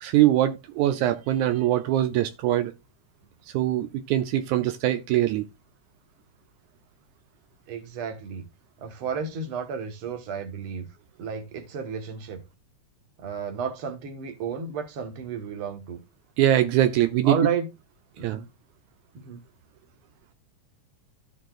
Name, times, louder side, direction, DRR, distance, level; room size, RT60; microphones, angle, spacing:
voice 1, 0.0-2.7 3.5-5.4 16.4-17.3 18.2-18.4, right 13 dB, 80° right, 2.1 m, -22 dB
voice 2, 7.7-8.5 8.8-10.9 11.2-12.4 13.2-16.0 17.2-17.7 18.2-18.5 19.1-19.4, right 6 dB, 55° right, 2.1 m, -32 dB
13.5 x 6.5 x 2.4 m
omnidirectional pair, 3.4 m